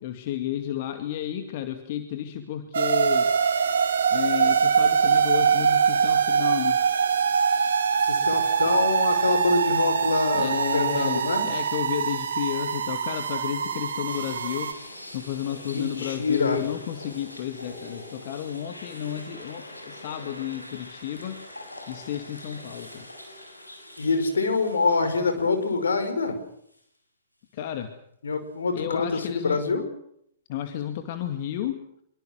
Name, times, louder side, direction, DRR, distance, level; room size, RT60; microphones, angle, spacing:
voice 1, 0.0-3.3 4.1-6.9 10.3-21.4 21.9-23.1 27.5-27.9 28.7-29.6 30.5-31.8, left 11 dB, 45° left, 7 dB, 2.3 m, -32 dB
sound 1, 2.7-14.7, right 6 dB, 65° right, 2.5 m, -23 dB
voice 2, 8.0-11.4 15.7-16.6 24.0-26.4 28.2-29.8, left 4 dB, 70° left, 8 dB, 5.4 m, -25 dB
sound 2, 14.1-26.3 26.7-26.8 29.1-29.3, left 1 dB, 85° left, 7.3 m, -44 dB
26.0 x 24.0 x 6.3 m, 0.69 s
figure-of-eight pair, 110°, 0 cm